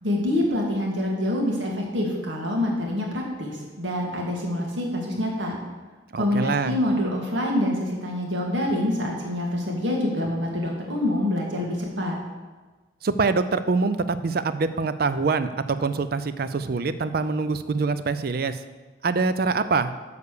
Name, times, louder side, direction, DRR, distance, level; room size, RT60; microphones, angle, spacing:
voice 1, 0.0-5.6 6.2-12.2, left 1 dB, 80° right, -1 dB, 2.0 m, -26 dB
voice 2, 6.1-6.8 13.0-18.6 19.0-19.9, right 4 dB, 50° right, 12 dB, 0.4 m, -24 dB
6.9 x 6.7 x 6.7 m, 1.3 s
head